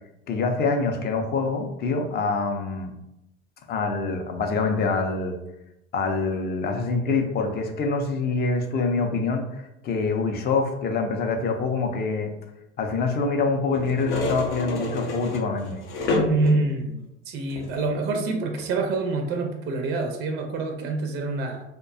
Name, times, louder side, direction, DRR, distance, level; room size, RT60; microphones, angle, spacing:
voice 1, 0.3-2.9 3.7-5.4 5.9-12.3 12.8-15.8, left 4 dB, 30° left, 4 dB, 0.4 m, -25 dB
sound 1, 13.7-16.8 17.5-17.9 18.6-18.7, left 2 dB, 80° left, 0.6 m, -28 dB
voice 2, 16.2-21.6, right 3 dB, 30° right, 3 dB, 0.4 m, -26 dB
2.5 x 2.2 x 2.4 m, 0.86 s
hypercardioid pair, 80°, 35 cm